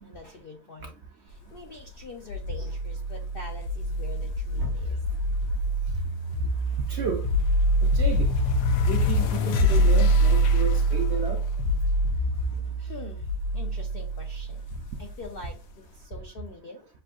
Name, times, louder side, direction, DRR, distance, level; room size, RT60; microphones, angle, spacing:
voice 1, 0.0-0.9 1.2-5.0 6.7-6.8 12.5-16.9, left 4 dB, 65° left, 0.5 m, -45 dB
sound 1, 2.3-15.5, equal, 80° left, 1.2 m, -25 dB
voice 2, 6.9-7.2 7.8-8.3 8.9-11.4, right 4 dB, 65° right, 0.7 m, -32 dB
6.6 x 2.6 x 2.4 m
omnidirectional pair, 1.7 m